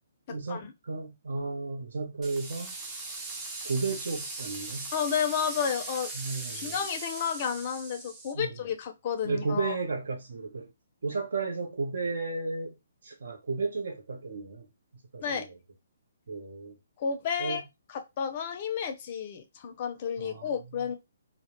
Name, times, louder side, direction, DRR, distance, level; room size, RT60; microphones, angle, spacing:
voice 1, 0.3-2.8 3.6-4.9 6.1-6.8 8.3-8.6 9.2-10.7 11.0-14.7 14.9-15.6 16.3-16.8 17.4-17.6 20.2-20.5 20.8-20.9, right 4 dB, 70° right, 0.7 m, -33 dB
sound 1, 2.2-8.3, right 3 dB, 20° right, 0.5 m, -39 dB
voice 2, 4.9-6.1 6.5-9.8 15.2-15.5 17.0-17.6 17.9-20.9, left 7 dB, 40° left, 0.4 m, -31 dB
2.1 x 2.0 x 2.9 m
hypercardioid pair, 145°, 0 cm